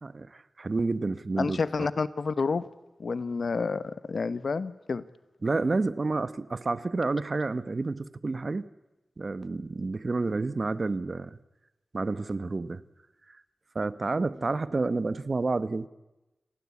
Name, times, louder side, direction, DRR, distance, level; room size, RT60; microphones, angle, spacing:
voice 1, 0.0-1.9 5.4-8.7 9.2-11.4 11.9-12.8 13.7-15.9, right 3 dB, 45° right, 16 dB, 1.0 m, -29 dB
voice 2, 1.4-2.7 3.0-5.0, left 4 dB, 65° left, 16 dB, 1.1 m, -29 dB
29.5 x 18.5 x 8.4 m, 1.0 s
wide cardioid pair, 80°, 0 cm